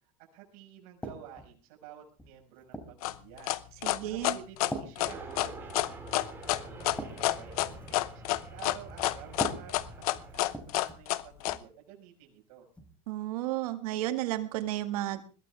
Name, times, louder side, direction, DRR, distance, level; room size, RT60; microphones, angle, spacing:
voice 1, 0.3-3.6 4.0-12.6, right 10 dB, 65° right, 0 dB, 5.8 m, -51 dB
sound 1, 1.0-1.5 2.2-3.0 3.7-4.0 4.7-5.9 6.2-6.4 6.7-8.0 9.3-11.1 11.4-11.7 12.7-12.9, right 1 dB, 5° left, 3.5 m, -42 dB
sound 2, 3.0-11.6, left 17 dB, 85° left, 0.9 m, -29 dB
voice 2, 3.8-4.4 13.1-15.2, right 14 dB, 90° right, 8 dB, 2.0 m, -32 dB
sound 3, 5.0-10.3, right 3 dB, 10° right, 5.2 m, -46 dB
22.0 x 14.5 x 3.5 m, 0.35 s
supercardioid pair, 135°, 18 cm